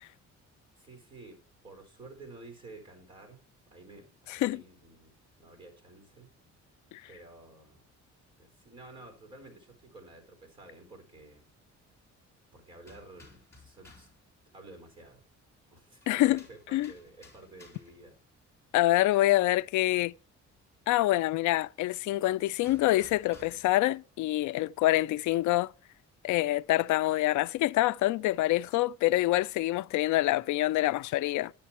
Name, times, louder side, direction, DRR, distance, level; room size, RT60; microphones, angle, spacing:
voice 1, 0.8-3.4 3.7-5.1 5.4-6.3 7.1-7.8 8.4-11.4 12.5-14.1 14.5-15.2 15.7-18.1, right 2 dB, 15° right, 4.2 m, -51 dB
voice 2, 4.3-4.6 6.9-7.0 16.1-16.4 16.7-16.9 18.7-20.1 20.9-25.7 26.2-31.5, left 16 dB, 85° left, 0.4 m, -26 dB
sound 1, 12.8-14.2 16.0-18.1 22.6-23.8, left 2 dB, 10° left, 3.8 m, -56 dB
10.5 x 10.0 x 4.3 m
cardioid pair, 170°, 29 cm